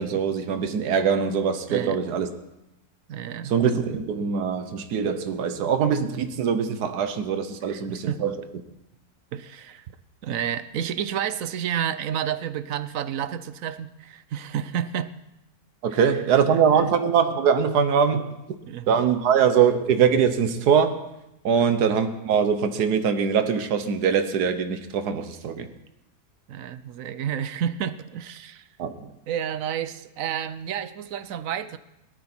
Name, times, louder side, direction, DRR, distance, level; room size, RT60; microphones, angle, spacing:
voice 1, 0.0-2.3 3.4-8.4 15.8-18.3 18.9-20.9 21.4-25.7 28.8-29.0, right 7 dB, 85° right, 9 dB, 1.5 m, -22 dB
voice 2, 3.1-3.5 7.7-8.2 9.3-9.9 10.2-15.1 15.9-16.1 16.4-16.9 18.6-18.9 21.5-21.7 26.5-28.7 29.3-31.8, right 9 dB, 65° right, 13 dB, 1.0 m, -30 dB
18.0 x 12.5 x 4.4 m, 0.90 s
omnidirectional pair, 1.6 m